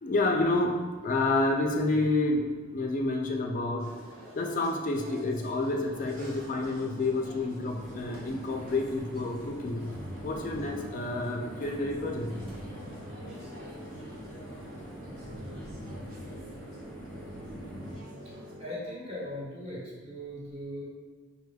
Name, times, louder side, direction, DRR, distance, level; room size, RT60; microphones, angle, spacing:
voice 1, 0.0-3.9 4.4-9.9 10.2-12.4, left 2 dB, 40° left, 2 dB, 0.3 m, -29 dB
sound 1, 3.8-18.5, equal, 85° right, 0.9 m, -50 dB
sound 2, 5.5-18.7, equal, 65° right, 1.3 m, -48 dB
sound 3, 7.7-18.0, equal, 10° left, 0.7 m, -43 dB
voice 2, 18.6-20.8, left 1 dB, 30° right, -7 dB, 1.2 m, -39 dB
5.3 x 3.2 x 2.2 m, 1.3 s
head